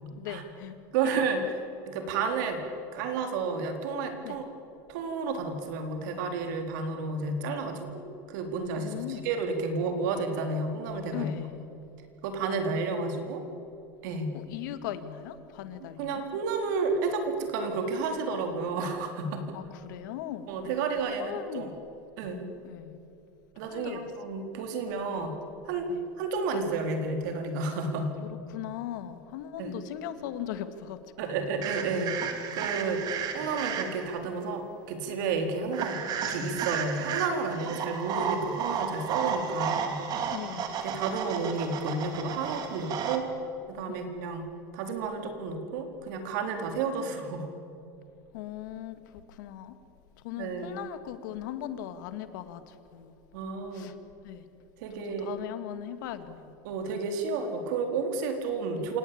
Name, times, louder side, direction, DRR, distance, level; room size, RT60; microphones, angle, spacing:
voice 1, 0.1-0.8 1.1-1.2 4.2-4.4 8.8-9.3 11.1-11.6 14.3-16.2 19.5-21.8 22.6-23.0 23.7-24.1 25.1-25.3 25.9-26.0 27.9-28.0 28.5-31.6 32.8-33.2 40.3-40.8 43.9-44.0 46.6-46.7 48.3-49.8 50.2-53.1 53.7-54.0 54.2-54.5 55.2-56.5 58.7-58.9, left 11 dB, 75° left, 10 dB, 2.1 m, -39 dB
voice 2, 0.9-1.4 1.8-2.6 2.9-4.4 4.9-8.0 8.3-11.3 12.2-13.4 14.0-14.3 16.0-19.6 20.5-21.7 22.2-22.4 23.6-25.3 25.7-25.9 26.2-28.1 29.6-29.7 31.2-33.0 33.3-36.0 36.3-40.0 40.8-43.3 43.7-44.5 44.7-47.5 50.4-50.8 53.3-53.9 54.8-55.3 56.6-59.0, right 4 dB, 70° right, 5 dB, 4.1 m, -31 dB
sound 1, 31.6-34.2 35.7-43.2, right 7 dB, 40° right, 2.7 m, -33 dB
27.5 x 18.0 x 8.7 m, 2.8 s
supercardioid pair, 130°, 10 cm